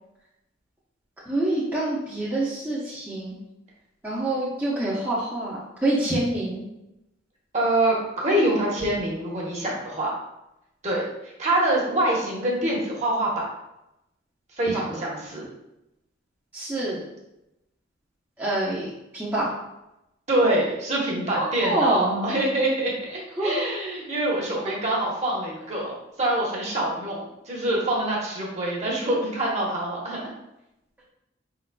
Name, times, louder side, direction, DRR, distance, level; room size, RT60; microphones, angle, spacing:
voice 1, 1.3-3.4 4.0-6.7 14.9-15.0 16.5-17.0 18.4-18.9 19.1-19.5 21.4-22.4 23.4-23.6 24.6-24.7, right 1 dB, 10° right, -9 dB, 0.7 m, -26 dB
voice 2, 7.5-10.1 10.8-13.5 14.6-15.4 20.3-30.3, right 1 dB, 35° right, -3 dB, 1.1 m, -25 dB
5.1 x 3.8 x 2.3 m, 0.90 s
head